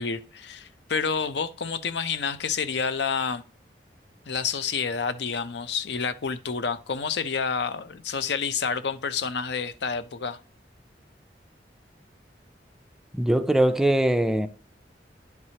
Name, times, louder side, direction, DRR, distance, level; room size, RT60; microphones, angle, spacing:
voice 1, 0.0-3.4 4.3-10.4, left 5 dB, 70° left, 0.6 m, -29 dB
voice 2, 13.1-14.5, right 1 dB, 5° right, 0.3 m, -21 dB
11.0 x 4.7 x 2.8 m
head